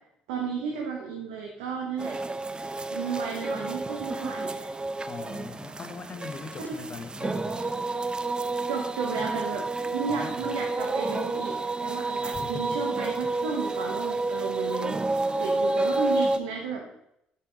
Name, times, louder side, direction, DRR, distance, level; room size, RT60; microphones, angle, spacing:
voice 1, 0.3-2.2 2.9-4.7 6.7-6.8 8.7-9.6 9.9-15.0 15.4-16.9, right 5 dB, 90° right, 0 dB, 0.9 m, -33 dB
sound 1, 2.0-16.4, right 2 dB, 25° right, 0.5 m, -30 dB
voice 2, 5.0-7.7 10.1-10.5 12.2-12.8, left 5 dB, 45° left, 8 dB, 0.9 m, -40 dB
6.7 x 4.5 x 5.0 m, 0.78 s
hypercardioid pair, 60°, 4 cm